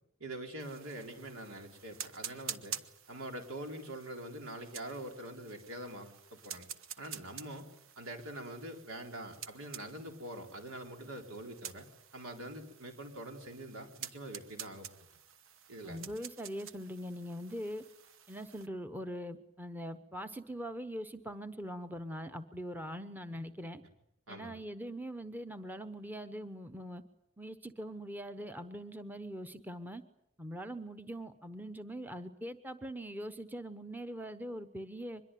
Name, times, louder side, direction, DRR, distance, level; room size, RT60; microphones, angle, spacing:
voice 1, 0.2-2.8 3.1-6.7 7.0-7.7 8.0-11.9 12.1-14.9 15.7-16.1 24.3-24.6, right 1 dB, 85° right, 3 dB, 4.2 m, -44 dB
sound 1, 0.6-18.7, right 8 dB, 65° right, 1.1 m, -49 dB
voice 2, 15.8-17.8 18.3-23.8 24.3-27.0 27.4-30.0 30.4-35.2, equal, 10° right, 8 dB, 0.9 m, -42 dB
23.5 x 22.0 x 9.3 m, 0.78 s
head